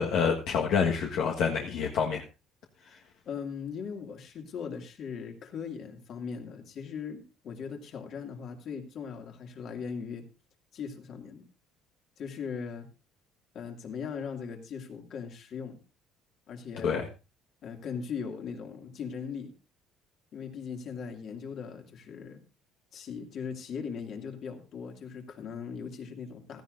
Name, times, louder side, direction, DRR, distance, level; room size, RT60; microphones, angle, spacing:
voice 1, 0.0-2.2 16.8-17.1, left 6 dB, 65° left, 1 dB, 1.5 m, -27 dB
voice 2, 3.3-10.3 10.7-11.5 12.2-12.9 13.5-15.8 16.5-17.0 17.6-19.5 20.3-22.4 22.9-26.6, left 6 dB, 50° left, 4 dB, 2.4 m, -39 dB
16.0 x 14.0 x 2.6 m, 0.29 s
cardioid pair, 130°, 0 cm